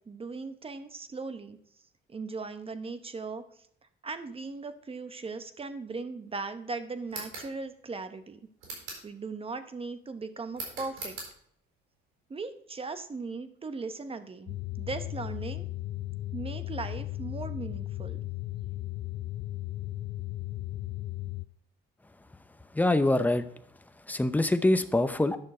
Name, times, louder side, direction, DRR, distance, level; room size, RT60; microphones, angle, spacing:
voice 1, 0.1-1.6 2.1-3.4 4.0-8.4 9.0-11.2 12.3-15.7 16.3-18.2, right 4 dB, 30° right, 10 dB, 0.9 m, -38 dB
sound 1, 7.1-7.5 8.6-9.1 10.5-11.3, right 3 dB, 90° right, 4.3 m, -40 dB
sound 2, 14.5-21.5, left 16 dB, 65° left, 0.4 m, -36 dB
voice 2, 22.7-23.5 24.1-25.4, left 2 dB, 10° left, 10 dB, 0.7 m, -24 dB
10.5 x 6.4 x 4.3 m, 0.67 s
cardioid pair, 90°, 20 cm